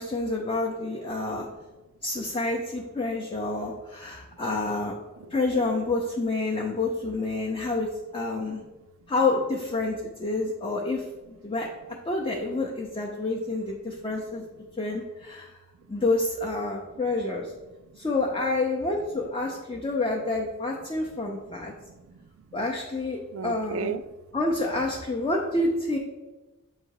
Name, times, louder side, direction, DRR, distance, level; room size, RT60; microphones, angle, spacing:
voice 1, 0.0-1.5 2.0-5.0 5.3-7.9 8.1-8.6 9.1-11.0 11.4-11.7 12.1-14.4 14.8-15.5 15.9-17.5 18.0-21.7 22.5-23.9 24.3-26.0, left 2 dB, 25° left, -1 dB, 0.5 m, -28 dB
voice 2, 5.2-5.7 13.2-13.3 14.0-14.1 15.9-16.0 16.9-17.0 17.7-17.8 21.3-22.6 23.3-24.0, right 6 dB, 65° right, 12 dB, 0.3 m, -38 dB
7.3 x 2.9 x 4.7 m, 1.1 s
head